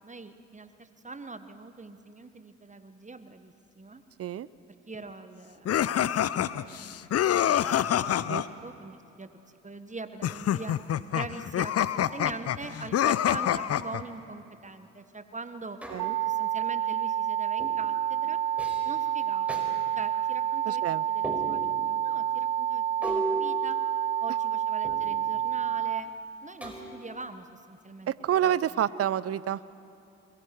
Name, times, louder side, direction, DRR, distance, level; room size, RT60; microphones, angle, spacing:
voice 1, 0.0-4.0 4.9-7.5 7.9-9.3 9.6-10.7 11.1-15.8 16.3-18.4 18.8-19.7 19.9-20.8 21.1-23.8 24.2-26.1 26.4-28.1 28.4-28.5, right 3 dB, 20° right, 10 dB, 1.4 m, -43 dB
sound 1, 5.6-8.5 10.2-14.0, left 10 dB, 45° left, 0.7 m, -26 dB
sound 2, 15.8-16.4 17.6-17.9 18.6-19.0 19.5-19.7 21.2-21.9 23.0-24.3 24.8-25.4 26.6-27.2, right 1 dB, 5° right, 5.0 m, -36 dB
sound 3, 16.0-26.0, right 10 dB, 85° right, 0.7 m, -29 dB
voice 2, 20.7-21.0 28.1-29.6, right 10 dB, 40° right, 19 dB, 0.7 m, -28 dB
27.5 x 22.0 x 4.7 m, 2.8 s
hypercardioid pair, 45°, 36 cm